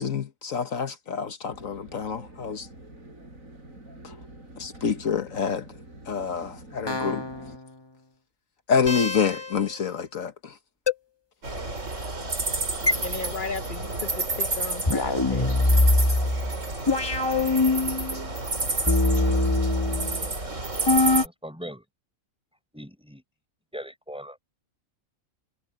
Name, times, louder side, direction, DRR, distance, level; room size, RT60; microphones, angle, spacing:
voice 1, 0.0-2.7 4.0-4.1 4.6-5.7 6.1-7.2 8.7-10.5, left 6 dB, 75° left, 1.6 m, -27 dB
sound 1, 1.5-7.6, right 1 dB, 80° right, 6.9 m, -46 dB
sound 2, 6.9-7.6 8.9-9.6 10.9-11.0 12.9-13.0 14.9-18.2 18.9-20.3 20.9-21.2, left 2 dB, 20° left, 1.3 m, -23 dB
sound 3, 11.4-21.3, right 3 dB, 65° right, 4.1 m, -30 dB
voice 2, 13.0-15.5, left 4 dB, 40° left, 1.1 m, -35 dB
voice 3, 21.2-21.8 22.7-23.2 23.7-24.4, equal, 5° right, 6.0 m, -40 dB
omnidirectional pair, 1.4 m